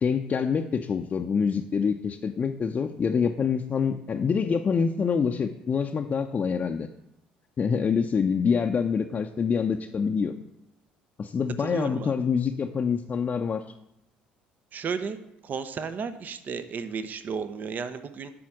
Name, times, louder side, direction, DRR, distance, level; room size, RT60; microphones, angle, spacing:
voice 1, 0.0-6.9 7.6-10.4 11.2-13.6, left 6 dB, 35° left, 3 dB, 0.6 m, -26 dB
voice 2, 11.6-12.1 14.7-15.2 15.4-18.3, right 5 dB, 45° right, 12 dB, 0.8 m, -33 dB
11.5 x 4.3 x 6.0 m, 0.81 s
hypercardioid pair, 55°, 4 cm